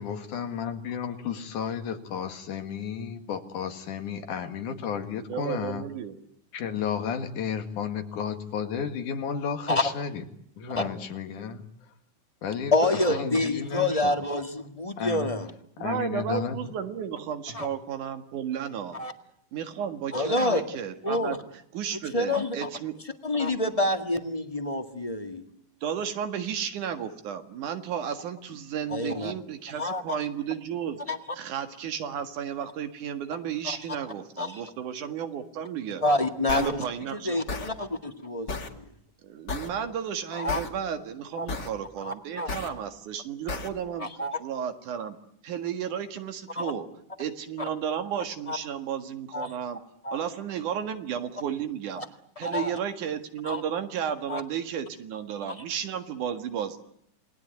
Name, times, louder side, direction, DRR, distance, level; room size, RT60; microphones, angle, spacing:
voice 1, 0.0-5.9 6.5-10.2 10.6-11.7 12.4-14.2 15.0-15.3 15.8-16.6, left 7 dB, 85° left, 7 dB, 3.5 m, -32 dB
voice 2, 5.3-6.2 15.8-19.0 19.5-21.4 21.7-23.0 25.8-31.0 31.3-36.0 36.4-37.4 39.2-44.1 44.4-45.2 45.4-46.9 47.2-49.8 50.1-52.0 52.4-56.8, right 8 dB, 85° right, 8 dB, 3.3 m, -33 dB
voice 3, 12.7-15.5 17.5-17.7 18.9-19.1 20.1-20.6 21.0-21.4 22.1-22.7 23.2-25.4 28.9-29.3 29.8-30.0 31.1-31.2 34.4-34.6 36.0-36.7 37.2-38.8 40.3-40.6 41.4-41.5 42.0-42.5 44.0-44.4 46.6-46.7 48.5-48.6 49.3-49.5 50.0-50.2 52.4-52.7 53.4-53.6 54.3-54.4, left 2 dB, 15° left, 6 dB, 1.4 m, -27 dB
sound 1, 36.5-36.7 37.5-37.7 38.5-38.7 39.5-39.7 40.5-40.7 41.5-41.7 42.5-42.7 43.5-43.7, left 3 dB, 35° left, 2.6 m, -32 dB
28.5 x 20.0 x 9.5 m, 0.71 s
omnidirectional pair, 3.5 m